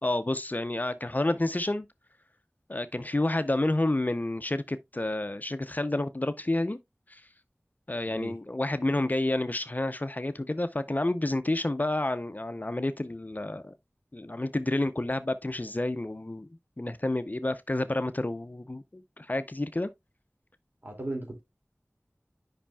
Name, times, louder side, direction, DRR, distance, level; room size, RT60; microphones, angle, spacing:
voice 1, 0.0-1.9 2.7-6.8 7.1-7.2 7.9-13.7 14.1-16.5 16.8-19.9, left 2 dB, 35° left, 0.5 m, -29 dB
voice 2, 8.1-8.4 20.8-21.4, right 1 dB, 45° right, 2.3 m, -36 dB
9.9 x 5.5 x 2.2 m
wide cardioid pair, 45°, 5 cm